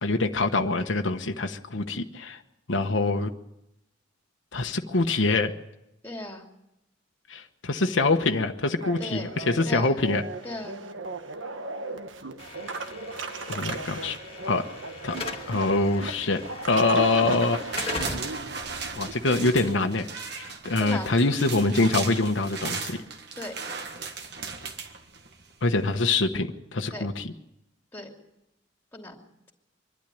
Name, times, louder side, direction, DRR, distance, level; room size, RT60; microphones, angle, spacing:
voice 1, 0.0-2.4 2.7-3.3 4.5-5.5 7.3-10.2 13.5-14.2 14.5-14.6 15.0-15.1 15.5-16.4 16.7-18.0 18.9-23.0 25.6-27.3, left 3 dB, 80° left, 5 dB, 1.1 m, -25 dB
voice 2, 6.0-6.4 9.0-9.3 9.7-10.0 10.4-10.8 20.8-21.1 23.4-23.5 26.9-27.1 27.9-28.1 28.9-29.2, left 1 dB, 10° left, 2 dB, 2.8 m, -36 dB
sound 1, 8.8-19.6, right 3 dB, 80° right, 1.4 m, -36 dB
Slam / Alarm, 12.4-20.5, left 3 dB, 30° left, 1.7 m, -40 dB
sound 2, 17.4-25.5 25.9-26.0, right 5 dB, 60° right, 1.7 m, -37 dB
24.0 x 12.0 x 9.2 m, 0.88 s
head